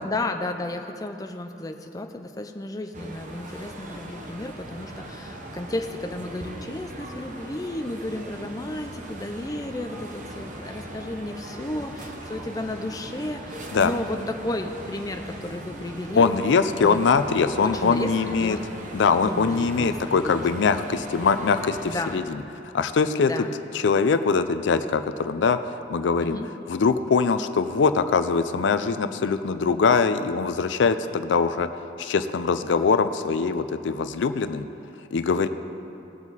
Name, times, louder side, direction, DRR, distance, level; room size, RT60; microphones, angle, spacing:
voice 1, 0.0-16.3 16.8-17.0 17.6-18.7 19.2-20.3 21.9-22.2 23.2-23.6 26.2-26.5, left 1 dB, 20° left, 5 dB, 0.5 m, -33 dB
sound 1, 2.9-22.2, right 1 dB, 45° right, 0.9 m, -39 dB
voice 2, 16.2-18.6 18.9-22.4 22.7-23.3 23.8-26.4 26.7-31.7 32.0-34.7 35.1-35.5, left 5 dB, 85° left, 11 dB, 0.4 m, -22 dB
18.0 x 7.2 x 4.0 m, 2.8 s
head